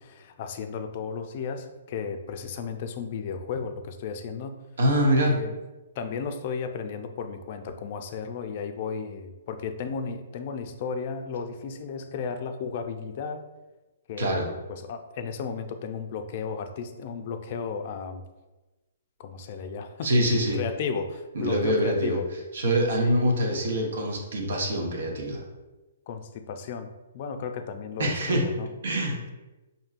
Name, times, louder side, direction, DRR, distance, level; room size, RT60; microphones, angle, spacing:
voice 1, 0.0-4.6 5.3-5.5 6.0-13.4 14.1-18.2 19.2-20.1 20.5-22.3 23.0-23.4 26.1-26.9 27.1-28.7, left 5 dB, 45° left, 7 dB, 0.4 m, -34 dB
voice 2, 4.8-5.4 14.2-14.4 20.0-20.6 21.3-22.2 22.5-25.4 28.0-28.5 28.8-29.2, equal, 75° right, 0 dB, 1.0 m, -24 dB
5.3 x 2.7 x 2.5 m, 1.1 s
hypercardioid pair, 150°, 0 cm